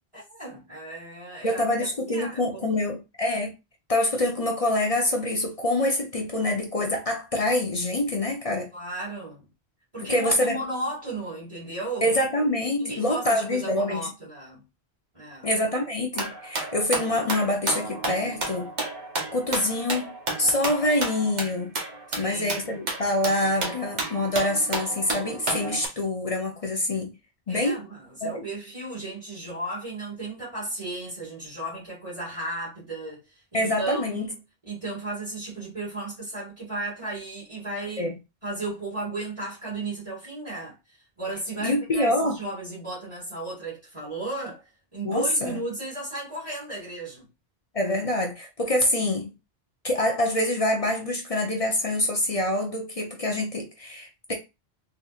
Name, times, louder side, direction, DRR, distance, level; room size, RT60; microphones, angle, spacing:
voice 1, 0.1-1.6 2.1-2.9 8.7-9.4 9.9-12.2 12.8-14.6 15.1-15.5 22.1-22.6 27.5-33.2 33.5-34.3 34.7-38.1 38.4-47.3, right 2 dB, 30° right, 2.0 m, -35 dB
voice 2, 1.4-3.5 3.9-8.7 10.1-10.6 12.0-14.1 15.4-18.7 19.3-20.1 20.4-21.7 22.2-27.1 27.5-27.8 28.2-28.5 33.5-34.3 38.0-38.1 41.6-42.4 45.0-45.5 47.7-49.3 49.8-54.3, left 1 dB, 40° left, 0.6 m, -25 dB
sound 1, 16.1-25.9, right 2 dB, 45° right, 1.0 m, -32 dB
3.8 x 2.8 x 2.4 m
omnidirectional pair, 1.1 m